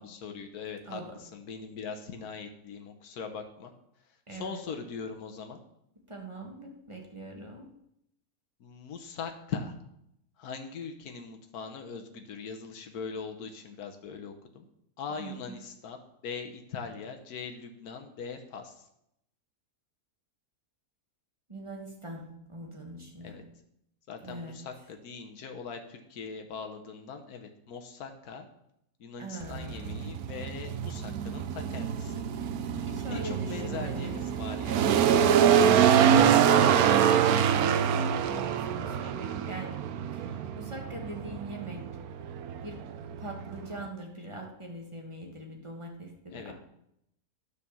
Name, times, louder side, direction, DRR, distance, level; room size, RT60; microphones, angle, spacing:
voice 1, 0.0-3.7 4.3-5.6 8.6-9.7 10.4-14.7 15.0-18.9 23.2-23.4 24.1-28.5 29.0-32.2 33.1-34.9 39.0-39.1 46.3-46.5, left 5 dB, 80° left, 5 dB, 1.5 m, -41 dB
voice 2, 4.3-4.6 6.1-7.7 15.2-15.6 21.5-23.4 24.2-24.6 29.2-30.0 32.8-34.2 37.3-39.8 40.1-41.8 42.6-42.8 43.2-46.5, right 1 dB, 20° right, 0 dB, 1.6 m, -42 dB
sound 1, 29.4-43.9, right 8 dB, 80° right, 1.1 m, -25 dB
9.9 x 5.0 x 7.0 m, 0.77 s
omnidirectional pair, 1.6 m